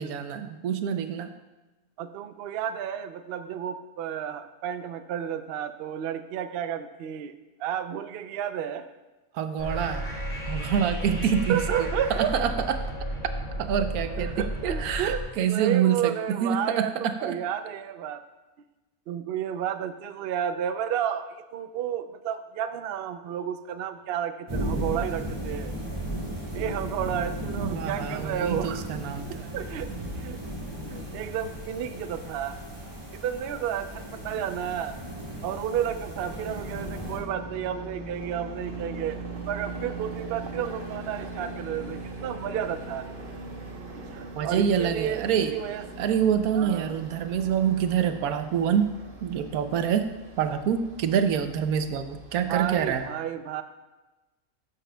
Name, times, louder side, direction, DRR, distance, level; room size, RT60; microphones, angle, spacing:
voice 1, 0.0-1.3 9.3-10.0 10.5-11.9 12.2-12.8 13.6-17.4 27.6-29.5 44.4-45.5 46.0-48.9 49.2-50.1 50.4-53.0, right 8 dB, 90° right, 9 dB, 1.1 m, -26 dB
voice 2, 2.0-7.3 7.6-8.9 11.5-12.4 14.2-15.2 15.5-18.2 19.1-25.7 26.5-28.9 29.5-30.4 30.8-32.6 33.1-35.0 35.4-39.2 39.5-43.1 44.0-46.0 46.5-47.0 52.5-53.6, right 9 dB, 65° right, 10 dB, 0.6 m, -32 dB
sound 1, 9.6-15.2, right 1 dB, 50° left, 2.9 m, -33 dB
sound 2, 24.5-37.2, right 1 dB, 20° right, 1.6 m, -35 dB
sound 3, 36.1-53.1, right 3 dB, 45° right, 1.1 m, -40 dB
13.0 x 7.5 x 2.2 m, 1.1 s
omnidirectional pair, 1.5 m